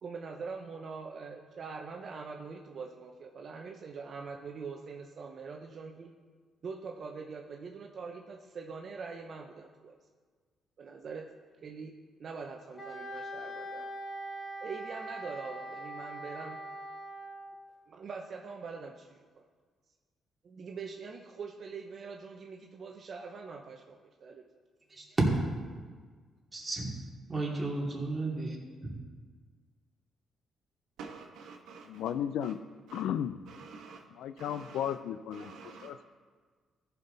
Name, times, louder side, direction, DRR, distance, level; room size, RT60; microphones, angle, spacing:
voice 1, 0.0-6.1 6.6-10.0 10.8-11.3 11.6-11.9 12.2-13.9 14.6-16.6 17.9-19.4 20.4-24.5, right 5 dB, 55° right, 1 dB, 0.8 m, -43 dB
Wind instrument woodwind instrument, 12.8-17.6, right 1 dB, 25° left, 1.9 m, -42 dB
voice 2, 26.5-26.9 27.3-28.6 28.8-28.9, right 2 dB, 20° right, -3 dB, 2.9 m, -34 dB
voice 3, 31.0-32.1 32.4-32.5 32.9-33.1 33.5-34.0 34.4-35.0 35.3-35.9, right 5 dB, 85° right, 2 dB, 1.3 m, -48 dB
voice 4, 31.9-32.6 32.9-33.4 34.2-35.5 35.8-36.0, left 9 dB, 85° left, 12 dB, 0.4 m, -34 dB
14.5 x 5.9 x 4.1 m, 1.5 s
cardioid pair, 90°, 0 cm